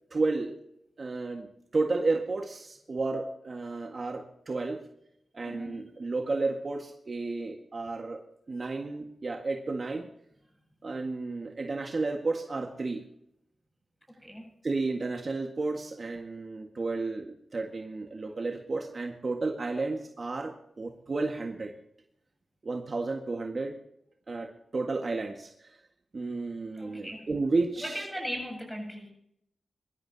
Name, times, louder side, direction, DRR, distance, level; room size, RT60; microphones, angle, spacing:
voice 1, 0.1-0.6 1.0-1.5 1.7-4.8 5.3-8.2 8.5-10.1 10.8-13.0 14.6-21.7 22.6-23.8 24.3-25.7 26.1-28.1, right 3 dB, 50° right, 3 dB, 1.8 m, -32 dB
voice 2, 5.4-5.9 14.2-14.5 26.7-27.3 27.8-29.1, equal, 5° left, 3 dB, 7.6 m, -38 dB
24.5 x 13.0 x 2.9 m, 0.76 s
cardioid pair, 70°, 0 cm